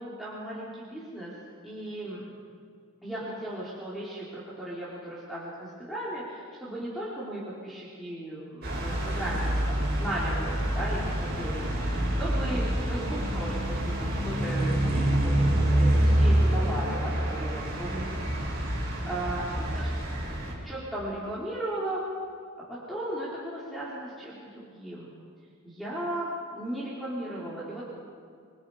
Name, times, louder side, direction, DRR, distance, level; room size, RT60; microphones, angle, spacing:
voice 1, 0.0-1.3 1.6-2.3 3.0-4.3 4.6-18.3 18.7-19.9 20.6-22.0 22.7-25.1 25.6-28.0, right 1 dB, ahead, -9 dB, 4.4 m, -36 dB
sound 1, 8.6-20.5, right 1 dB, 50° right, 6.9 m, -27 dB
28.0 x 23.5 x 5.2 m, 2.3 s
head